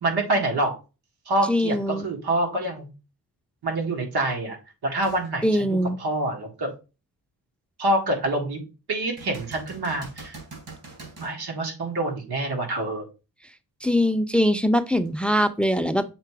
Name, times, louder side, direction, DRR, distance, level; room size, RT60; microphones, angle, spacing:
voice 1, 0.0-0.7 1.3-2.9 3.6-4.6 4.8-6.7 7.8-8.6 8.9-10.4 11.2-13.0, right 1 dB, 90° right, 1 dB, 1.9 m, -26 dB
voice 2, 1.5-2.1 5.4-6.0 13.8-16.0, equal, 5° left, 11 dB, 0.3 m, -22 dB
sound 1, 5.0-5.3 5.9-6.0 9.2-11.4 15.1-15.2, right 3 dB, 70° right, 3.7 m, -42 dB
6.7 x 3.0 x 4.7 m, 0.30 s
wide cardioid pair, 135°, 38 cm